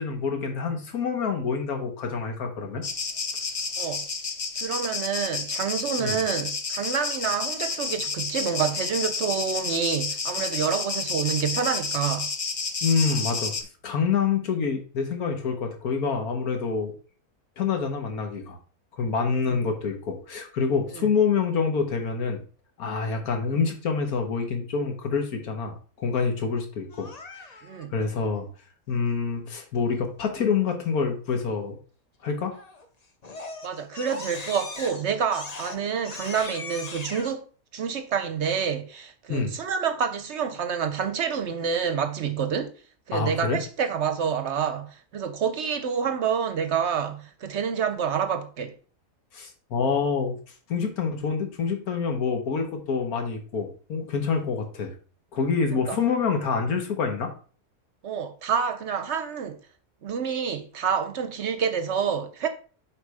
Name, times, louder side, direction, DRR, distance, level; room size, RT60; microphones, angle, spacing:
voice 1, 0.0-2.8 6.0-6.2 12.8-13.5 13.8-16.9 17.6-18.6 19.0-22.4 22.8-27.1 27.3-27.5 27.9-28.5 28.9-31.8 32.2-32.5 39.3-39.5 43.1-43.6 49.3-50.4 50.7-54.9 55.3-57.3, left 5 dB, 80° left, 1.7 m, -27 dB
sound 1, 2.8-13.6, left 4 dB, 60° left, 0.3 m, -30 dB
voice 2, 4.6-12.3 19.5-19.6 20.9-21.1 27.6-27.9 33.6-37.5 37.7-42.7 43.1-48.7 55.9-56.0 58.0-59.6 60.0-62.5, right 7 dB, 60° right, 0.8 m, -28 dB
Crying sobbing, 26.9-27.8 32.5-32.8 33.2-37.3, left 3 dB, 35° left, 0.7 m, -39 dB
7.3 x 3.3 x 4.8 m
omnidirectional pair, 1.5 m